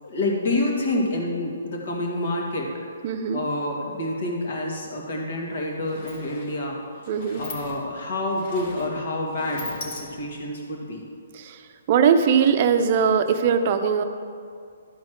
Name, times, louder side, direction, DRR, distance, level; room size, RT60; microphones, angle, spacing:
voice 1, 0.0-2.7 3.3-11.0, left 1 dB, 55° left, -1 dB, 2.0 m, -28 dB
voice 2, 3.0-3.4 7.1-7.4 11.3-11.6 11.9-14.0, right 7 dB, 40° right, 8 dB, 0.6 m, -20 dB
Sliding door, 5.6-10.5, left 3 dB, 40° left, 1.4 m, -41 dB
12.0 x 4.2 x 6.3 m, 2.3 s
hypercardioid pair, 150°, 0 cm